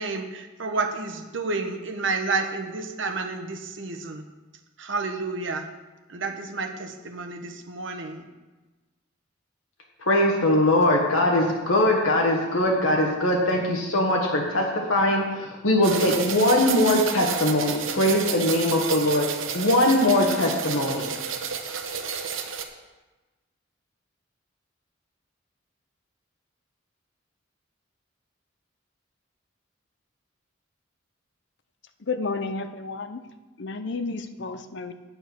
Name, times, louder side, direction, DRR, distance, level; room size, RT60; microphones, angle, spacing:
voice 1, 0.0-4.2 4.8-5.7 6.1-8.2, right 3 dB, 70° right, 5 dB, 1.0 m, -30 dB
voice 2, 10.0-19.3 19.5-21.1, left 1 dB, 90° left, 0 dB, 1.4 m, -21 dB
sound 1, 15.8-22.6, right 6 dB, 85° right, 0.9 m, -31 dB
voice 3, 32.1-33.2 33.6-34.9, left 4 dB, 60° left, 9 dB, 0.6 m, -31 dB
8.9 x 7.0 x 6.0 m, 1.2 s
head